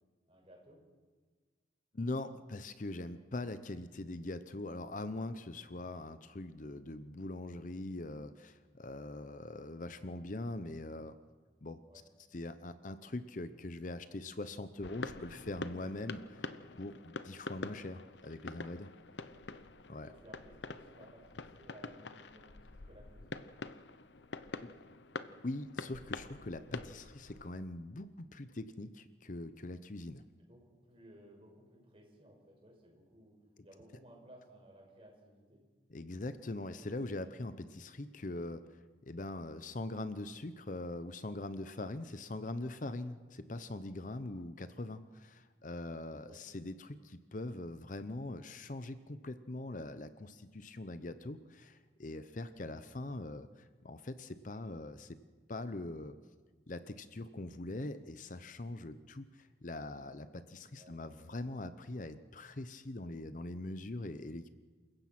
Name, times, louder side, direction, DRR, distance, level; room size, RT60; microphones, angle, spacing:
voice 1, 0.3-0.8 11.9-12.0 19.3-19.6 20.0-23.4 30.4-33.4 33.6-35.6 46.2-46.4 52.5-52.8 60.7-61.4, right 1 dB, 30° right, -1 dB, 6.0 m, -59 dB
voice 2, 1.9-11.2 11.6-11.8 12.3-16.4 16.8-18.9 19.9-20.1 25.4-30.2 35.9-55.2 55.5-56.2 56.7-64.5, left 2 dB, 45° left, 12 dB, 0.7 m, -42 dB
sound 1, 14.8-27.5, left 3 dB, 80° left, 0.9 m, -46 dB
28.5 x 15.5 x 6.0 m, 1.5 s
head